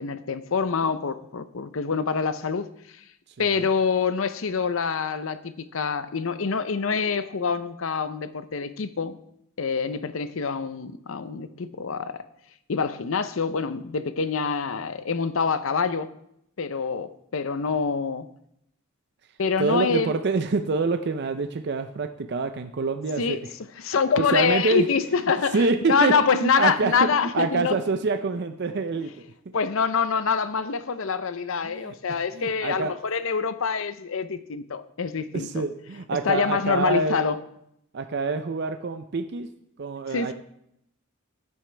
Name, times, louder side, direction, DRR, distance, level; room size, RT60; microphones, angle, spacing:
voice 1, 0.0-2.7 3.4-9.2 9.6-12.2 12.7-16.1 16.6-18.3 19.4-20.1 23.2-23.4 23.8-27.8 29.5-35.6 36.2-37.4 40.1-40.3, left 5 dB, 70° left, 0.6 m, -26 dB
voice 2, 3.4-3.7 19.6-23.5 23.8-24.9 25.5-29.1 31.6-32.9 35.3-37.2 37.9-39.5 39.8-40.3, right 3 dB, 50° right, 0.5 m, -26 dB
13.0 x 9.1 x 3.4 m
head